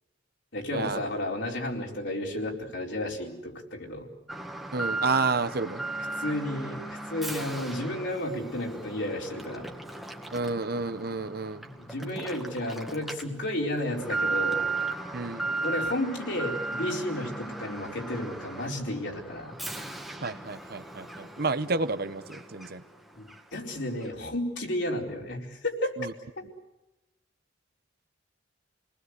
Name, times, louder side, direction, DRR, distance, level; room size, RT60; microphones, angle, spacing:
voice 1, 0.5-4.1 6.0-9.7 11.6-14.6 15.6-19.5 23.1-25.9 26.4-26.5, left 1 dB, 70° left, 0 dB, 4.5 m, -32 dB
Alarm, 4.3-23.0 23.3-23.4 24.0-24.1, right 3 dB, ahead, 1.7 m, -36 dB
voice 2, 4.7-5.8 10.3-11.7 15.1-15.5 20.2-22.8 26.0-26.1, right 3 dB, 55° right, 12 dB, 1.0 m, -30 dB
29.0 x 20.0 x 8.1 m, 0.99 s
head